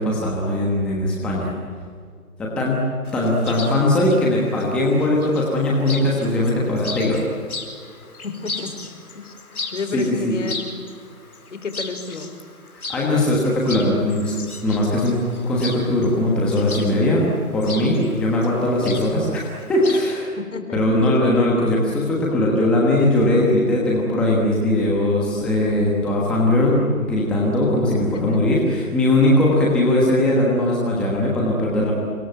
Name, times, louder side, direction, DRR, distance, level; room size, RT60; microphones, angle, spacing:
voice 1, 0.0-1.5 2.4-2.9 3.1-7.2 9.9-10.4 12.7-14.3 14.6-15.2 15.5-17.2 17.5-20.3 20.7-31.9, left 1 dB, ahead, -4 dB, 1.2 m, -20 dB
Chirp tweet, 3.0-20.2, left 3 dB, 75° left, 4.9 m, -37 dB
voice 2, 8.2-8.9 9.1-10.7 11.5-12.4 20.3-20.8 28.1-28.4, left 4 dB, 55° left, 8 dB, 4.0 m, -31 dB
25.5 x 22.0 x 9.1 m, 2.1 s
figure-of-eight pair, 160°, 44 cm